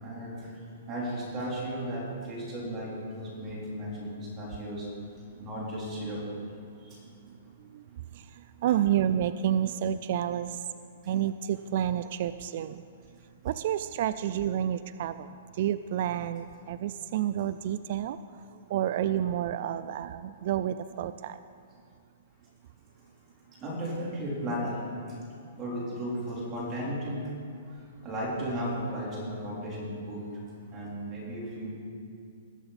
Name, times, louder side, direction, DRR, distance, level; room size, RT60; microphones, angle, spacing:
voice 1, 0.9-3.9 4.2-4.9 5.4-6.2 8.7-8.8 23.6-24.8 25.6-27.2 28.0-30.2 30.7-31.7, equal, 20° right, -6 dB, 3.7 m, -34 dB
voice 2, 8.6-10.6 11.1-12.8 13.4-15.3 15.6-18.2 18.7-21.4, right 11 dB, 50° right, 12 dB, 0.3 m, -29 dB
20.0 x 7.7 x 4.2 m, 2.4 s
hypercardioid pair, 155°, 0 cm